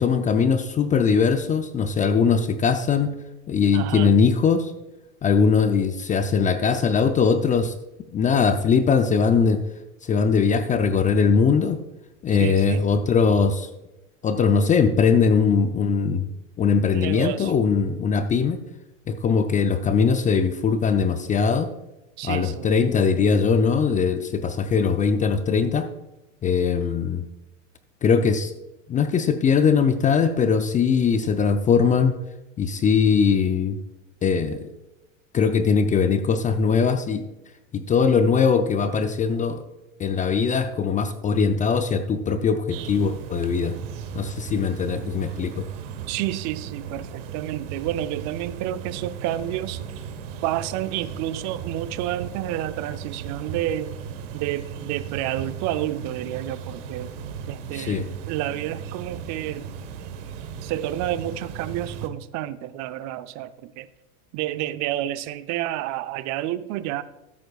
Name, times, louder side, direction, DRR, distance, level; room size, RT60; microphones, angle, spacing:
voice 1, 0.0-3.1 3.5-4.7 5.2-7.7 8.1-9.6 10.0-11.8 12.2-13.7 14.2-16.3 16.6-18.6 19.1-21.7 22.2-25.9 26.4-27.2 28.0-28.5 28.9-32.1 32.6-33.8 34.2-34.7 35.3-37.2 37.7-39.6 40.0-43.7 44.1-45.7 57.7-58.0, left 5 dB, 20° left, 9 dB, 0.5 m, -21 dB
voice 2, 3.7-4.1 12.3-12.9 16.9-17.5 22.2-22.7 46.1-49.8 50.4-53.9 54.3-57.1 57.5-59.8 60.6-63.9 64.3-67.0, right 13 dB, 45° right, 13 dB, 0.7 m, -30 dB
sound 1, 42.7-62.1, right 7 dB, 60° right, 1.3 m, -36 dB
13.0 x 8.5 x 2.4 m, 0.97 s
hypercardioid pair, 105°, 41 cm